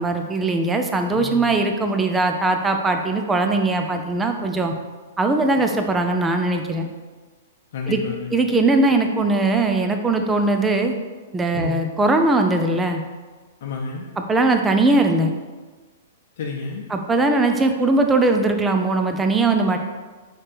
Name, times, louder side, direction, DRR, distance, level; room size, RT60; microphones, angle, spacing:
voice 1, 0.0-4.7 5.2-6.9 7.9-8.0 8.3-10.9 11.3-13.0 14.2-15.3 16.9-19.8, right 2 dB, 15° right, 5 dB, 0.6 m, -20 dB
voice 2, 1.1-1.6 7.7-8.4 11.5-11.8 13.6-14.1 16.4-16.8, left 4 dB, 65° left, 0 dB, 0.7 m, -30 dB
4.5 x 4.2 x 5.0 m, 1.3 s
hypercardioid pair, 125°, 0 cm